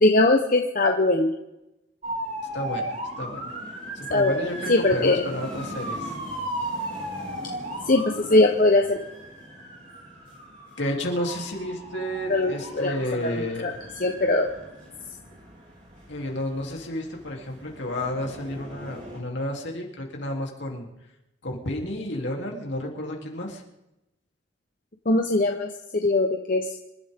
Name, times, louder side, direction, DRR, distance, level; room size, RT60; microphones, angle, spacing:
voice 1, 0.0-1.3 4.1-4.4 4.7-5.2 7.9-9.0 12.3-12.9 13.2-13.3 13.6-13.7 14.0-14.5 25.1-26.7, left 2 dB, 45° left, 2 dB, 1.0 m, -21 dB
sound 1, 2.0-19.2, right 1 dB, 40° right, 4.0 m, -37 dB
voice 2, 2.5-3.5 3.9-6.1 10.8-13.8 15.3-15.4 16.1-20.9 21.4-23.6, left 1 dB, 70° left, 0 dB, 3.3 m, -31 dB
27.0 x 12.5 x 3.7 m, 0.91 s
head